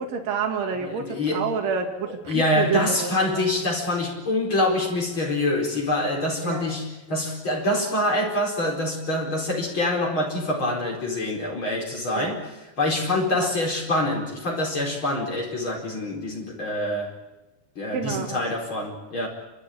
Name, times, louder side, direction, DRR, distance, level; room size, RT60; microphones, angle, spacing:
voice 1, 0.0-3.4 6.4-6.7 12.1-12.3 13.4-13.5 17.9-18.4, right 6 dB, 50° right, 2 dB, 3.2 m, -28 dB
voice 2, 0.8-1.4 2.3-12.4 12.8-17.1 17.8-19.3, left 1 dB, 35° left, -1 dB, 5.1 m, -25 dB
29.5 x 13.5 x 10.0 m, 1.1 s
omnidirectional pair, 4.2 m